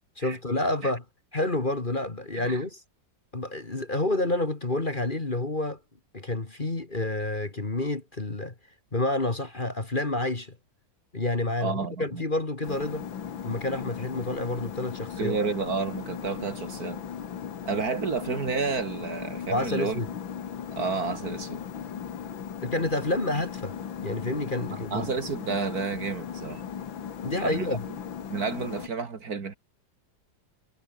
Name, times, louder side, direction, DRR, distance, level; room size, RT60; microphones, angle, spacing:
voice 1, 0.2-1.0 1.3-2.8 3.3-5.8 6.1-8.5 8.9-10.6 11.1-13.1 13.4-15.4 19.5-20.1 22.6-23.8 24.0-25.1 27.2-27.9, left 2 dB, 25° left, 2.3 m, -29 dB
voice 2, 11.6-12.2 15.2-17.0 17.6-20.0 20.8-21.6 24.7-26.6 27.4-27.7 28.3-29.5, right 5 dB, 50° right, 2.3 m, -31 dB
sound 1, 12.6-28.9, left 8 dB, 90° left, 2.5 m, -38 dB
omnidirectional pair, 2.1 m